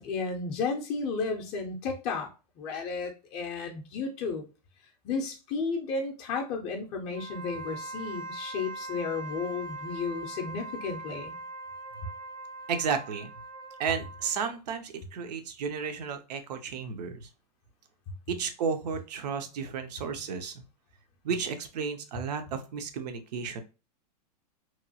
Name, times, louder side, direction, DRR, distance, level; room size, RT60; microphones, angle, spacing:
voice 1, 0.0-4.4 5.0-11.4, left 4 dB, 30° left, 2 dB, 0.5 m, -33 dB
Wind instrument woodwind instrument, 7.1-14.6, right 2 dB, 25° right, 0.5 m, -41 dB
voice 2, 12.7-13.3 13.8-17.3 18.3-20.6 21.2-23.6, right 6 dB, 75° right, 7 dB, 0.6 m, -33 dB
2.9 x 2.2 x 2.6 m, 0.31 s
supercardioid pair, 150°, 21 cm